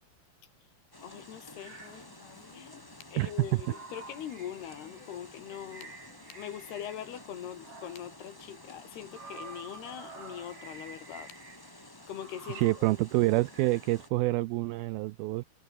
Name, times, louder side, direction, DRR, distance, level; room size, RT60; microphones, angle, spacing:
sound 1, 0.9-14.1, left 1 dB, 10° left, 1.6 m, -52 dB
voice 1, 1.0-2.1 2.5-2.7 3.1-6.0 6.3-11.3 12.1-12.7, left 10 dB, 70° left, 4.1 m, -42 dB
sound 2, 1.6-2.1 3.2-7.3 7.6-8.2 9.0-11.8 12.1-12.9 13.5-13.9, right 4 dB, 35° right, 6.1 m, -50 dB
sound 3, 1.7-9.5, left 6 dB, 85° left, 7.4 m, -61 dB
voice 2, 3.2-3.6 12.5-15.4, right 20 dB, 85° right, 2.1 m, -27 dB
omnidirectional pair, 4.9 m